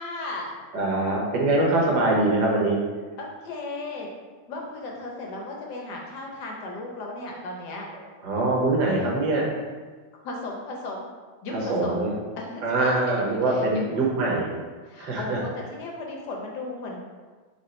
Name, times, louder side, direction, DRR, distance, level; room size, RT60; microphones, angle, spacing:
voice 1, 0.0-0.5 3.2-4.1 4.5-7.9 10.2-11.1 11.4-12.1 12.4-14.0 14.9-17.0, left 2 dB, 65° left, -1 dB, 1.2 m, -35 dB
voice 2, 0.7-2.7 8.2-9.4 11.7-12.1 12.6-14.5 15.0-15.4, right 2 dB, 60° right, -3 dB, 1.4 m, -23 dB
5.1 x 2.4 x 4.2 m, 1.4 s
omnidirectional pair, 2.3 m